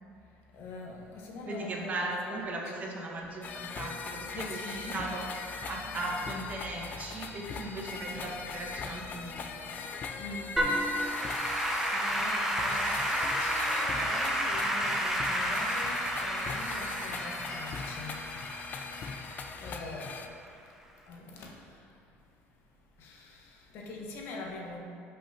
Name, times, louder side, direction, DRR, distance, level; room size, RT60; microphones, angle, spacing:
voice 1, 0.5-2.4 4.3-5.2 10.2-11.5 11.9-18.2 19.6-20.2 21.1-21.7 23.0-24.8, left 2 dB, 60° left, -1 dB, 1.2 m, -43 dB
voice 2, 1.5-9.7, right 2 dB, 35° right, -1 dB, 1.2 m, -38 dB
sound 1, 3.4-20.3, left 5 dB, 40° left, 0.5 m, -40 dB
Applause / Keyboard (musical), 10.6-19.9, right 1 dB, 10° right, 0.9 m, -31 dB
11.0 x 5.6 x 2.9 m, 2.5 s
cardioid pair, 130°, 5 cm